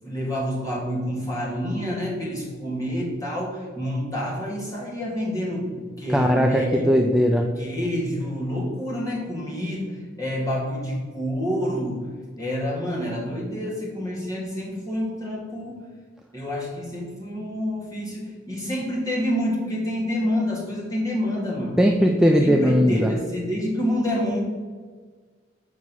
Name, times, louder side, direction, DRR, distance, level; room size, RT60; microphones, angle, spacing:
voice 1, 0.0-7.1 7.6-12.1 12.4-15.9 16.3-21.8 22.4-24.4, equal, 20° left, -4 dB, 2.4 m, -28 dB
voice 2, 6.1-7.5 21.8-23.1, equal, 5° right, 2 dB, 0.4 m, -19 dB
7.3 x 5.3 x 6.2 m, 1.5 s
head